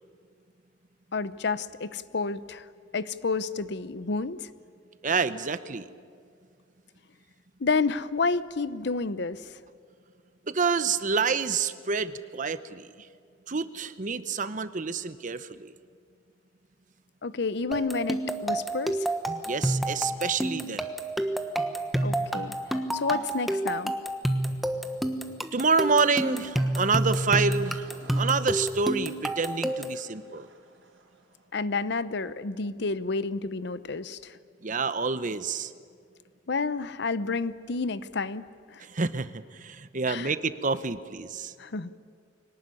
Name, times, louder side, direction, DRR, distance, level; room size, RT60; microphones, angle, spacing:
voice 1, 1.1-2.7 2.9-4.5 7.6-9.5 17.2-19.1 22.0-22.6 22.9-23.9 31.5-34.4 36.5-38.4 38.7-38.8 40.1-40.3 41.6-41.9, left 4 dB, 65° left, 15 dB, 0.7 m, -30 dB
voice 2, 5.0-5.9 10.5-12.9 13.5-15.7 19.4-20.9 25.5-27.9 28.1-30.5 34.6-35.7 38.8-41.5, right 4 dB, 45° right, 13 dB, 0.8 m, -28 dB
sound 1, 17.7-30.0, right 1 dB, ahead, 1.2 m, -29 dB
sound 2, 25.7-31.4, right 2 dB, 80° right, 4.0 m, -51 dB
23.5 x 18.5 x 9.8 m, 2.1 s
head